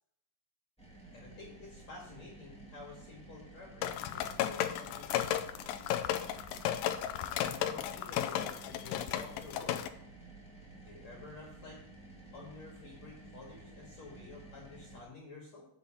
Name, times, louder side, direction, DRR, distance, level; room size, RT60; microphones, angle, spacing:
sound 1, 0.8-15.0, right 2 dB, 5° left, 0.5 m, -53 dB
voice 1, 1.1-5.5 7.1-9.8 10.8-11.8 12.3-15.7, left 3 dB, 50° left, -2 dB, 2.8 m, -51 dB
sound 2, 3.8-9.9, left 11 dB, 80° left, 2.1 m, -34 dB
8.4 x 5.8 x 7.2 m, 0.72 s
omnidirectional pair, 4.6 m